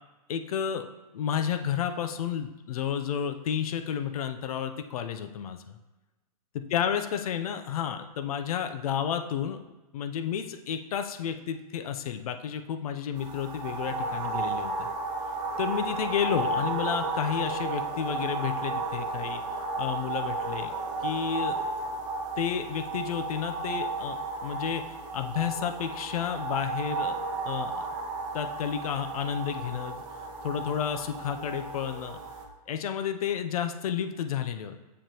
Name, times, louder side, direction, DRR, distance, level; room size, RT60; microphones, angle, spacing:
voice 1, 0.3-0.9 1.1-5.8 6.7-9.6 9.9-14.9 15.6-19.4 19.8-20.7 21.0-21.6 22.4-24.8 25.1-27.2 27.4-27.9 28.3-30.0 30.4-32.2 32.7-34.8, left 8 dB, 65° left, 8 dB, 0.7 m, -31 dB
sound 1, 13.2-32.4, right 3 dB, 55° right, 1.2 m, -33 dB
7.3 x 5.0 x 3.0 m, 1.1 s
hypercardioid pair, 135°, 20 cm